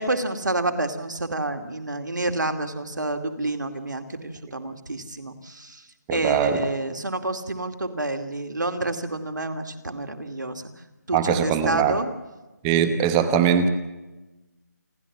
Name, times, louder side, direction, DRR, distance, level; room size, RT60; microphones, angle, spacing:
voice 1, 0.0-5.8 6.1-10.6 11.1-12.1, right 2 dB, 85° right, 7 dB, 2.5 m, -28 dB
voice 2, 6.1-6.6 11.1-12.0 12.6-13.7, right 8 dB, 15° right, 11 dB, 1.0 m, -21 dB
29.0 x 12.5 x 7.3 m, 1.1 s
figure-of-eight pair, 160°, 10 cm